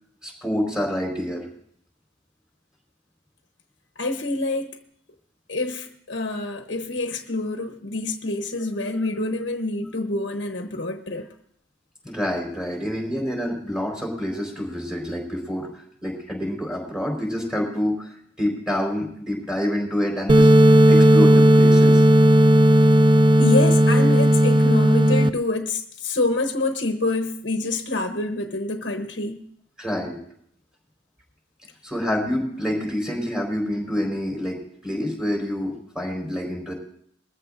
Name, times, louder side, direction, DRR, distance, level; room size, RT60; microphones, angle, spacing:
voice 1, 0.2-1.5 12.0-15.7 16.0-20.5 20.9-22.0 29.8-30.2 31.8-36.7, equal, 5° right, 1 dB, 4.3 m, -27 dB
voice 2, 4.0-4.8 5.5-11.3 23.4-29.4, left 2 dB, 65° left, 4 dB, 1.0 m, -26 dB
sound 1, 20.3-25.3, right 1 dB, 25° right, 0.4 m, -14 dB
21.5 x 14.5 x 2.6 m, 0.66 s
head